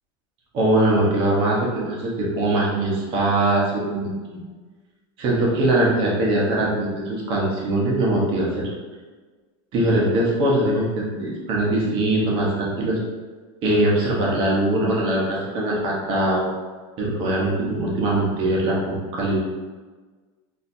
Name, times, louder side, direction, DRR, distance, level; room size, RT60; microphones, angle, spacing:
voice 1, 0.5-4.1 5.2-8.6 9.7-13.0 13.6-16.4 17.0-19.4, right 1 dB, 40° right, -4 dB, 1.1 m, -21 dB
4.4 x 2.9 x 2.6 m, 1.4 s
supercardioid pair, 165°, 14 cm